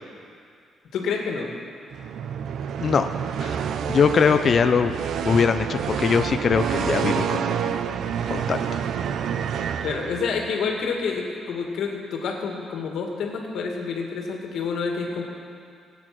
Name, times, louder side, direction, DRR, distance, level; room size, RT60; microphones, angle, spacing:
voice 1, 0.9-1.5 4.0-4.1 9.8-15.2, left 5 dB, 70° left, 1 dB, 2.0 m, -28 dB
sound 1, 1.9-10.6, right 8 dB, 60° right, 0.5 m, -28 dB
voice 2, 2.8-3.1 3.4-3.6 3.9-5.0 5.2-7.5 8.3-8.6, left 6 dB, 35° left, 9 dB, 0.4 m, -21 dB
18.0 x 8.9 x 6.1 m, 2.3 s
cardioid pair, 160°, 0 cm